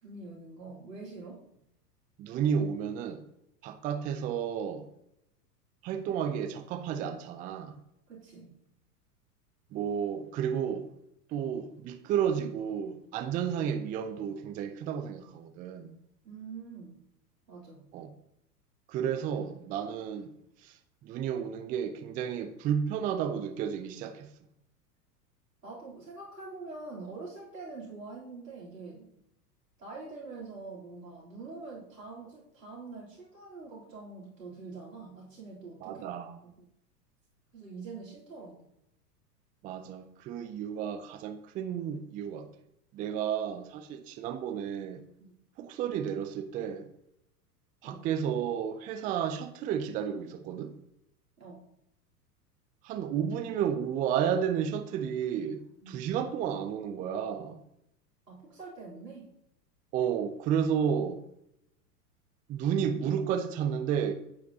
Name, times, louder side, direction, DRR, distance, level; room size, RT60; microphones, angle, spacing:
voice 1, 0.0-1.4 8.1-8.5 16.2-17.0 17.5-17.9 25.6-29.1 29.8-36.1 36.4-36.6 37.5-38.6 45.2-45.3 47.8-48.1 51.4-51.7 55.8-56.0 58.3-59.3, right 3 dB, 90° right, 3.6 m, -45 dB
voice 2, 2.2-3.2 3.6-4.9 5.8-7.8 9.7-10.9 11.3-16.0 17.9-18.1 18.9-20.3 20.6-20.8 21.0-24.3 35.8-36.5 39.6-42.5 42.9-45.0 45.6-46.9 47.8-50.7 52.8-57.6 59.9-61.2 62.5-64.1, right 8 dB, 20° right, 0.4 m, -32 dB
9.3 x 8.1 x 2.8 m
figure-of-eight pair, 95°, 48 cm